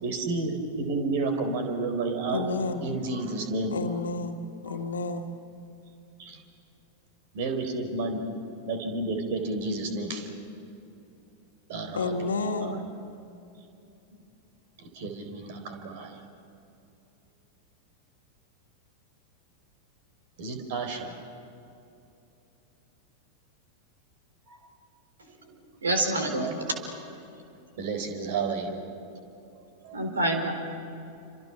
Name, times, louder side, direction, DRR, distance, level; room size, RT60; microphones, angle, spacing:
voice 1, 0.0-2.4 2.8-3.7 4.7-4.8 6.2-6.4 7.3-8.3 8.7-10.3 11.7-12.8 14.8-16.2 20.4-21.2 24.5-24.6 25.2-25.6 27.8-28.9 29.8-30.0, right 3 dB, 50° right, 6 dB, 4.3 m, -31 dB
voice 2, 2.3-2.9 3.7-5.3 11.9-12.9, left 3 dB, 70° left, 4 dB, 2.0 m, -31 dB
voice 3, 25.8-26.6 29.9-30.5, right 2 dB, 70° right, 4 dB, 4.2 m, -26 dB
29.0 x 26.5 x 6.0 m, 2.8 s
figure-of-eight pair, 90°, 0 cm